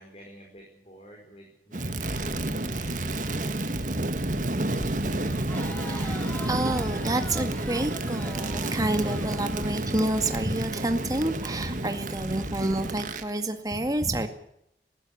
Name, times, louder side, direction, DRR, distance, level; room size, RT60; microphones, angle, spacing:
voice 1, 0.0-3.1, right 1 dB, 35° left, 1 dB, 5.2 m, -50 dB
Crackle, 1.7-13.3, right 1 dB, 45° right, 1.8 m, -30 dB
Crowd, 5.3-10.2, left 1 dB, 10° left, 1.8 m, -43 dB
voice 2, 5.9-14.3, right 1 dB, 20° right, 7 dB, 2.0 m, -29 dB
20.0 x 16.0 x 8.6 m, 0.76 s
head